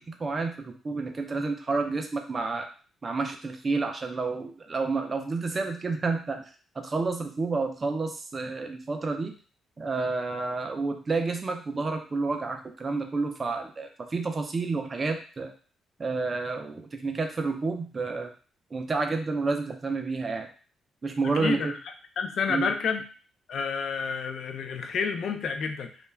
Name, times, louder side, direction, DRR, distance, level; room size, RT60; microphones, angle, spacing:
voice 1, 0.0-2.7 3.0-6.4 6.8-9.3 9.8-15.5 16.0-18.3 18.7-20.5 21.0-21.8 22.5-22.7, right 3 dB, 25° right, 4 dB, 0.4 m, -30 dB
voice 2, 21.2-21.7 22.2-23.0 23.5-25.9, left 5 dB, 50° left, 6 dB, 0.3 m, -29 dB
2.2 x 2.2 x 3.2 m, 0.39 s
cardioid pair, 165°, 0 cm